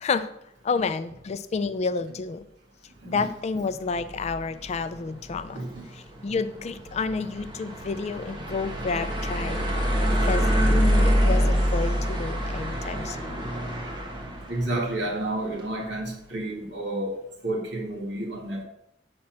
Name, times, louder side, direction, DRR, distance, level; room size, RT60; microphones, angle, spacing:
voice 1, 0.6-2.4 3.0-5.6 6.2-9.7 10.2-13.2, left 4 dB, 35° left, 12 dB, 0.3 m, -30 dB
sound 1, 3.8-16.0, equal, 25° right, 1.2 m, -27 dB
voice 2, 14.5-18.6, right 1 dB, 65° right, -2 dB, 2.0 m, -30 dB
7.4 x 4.3 x 5.8 m, 0.78 s
head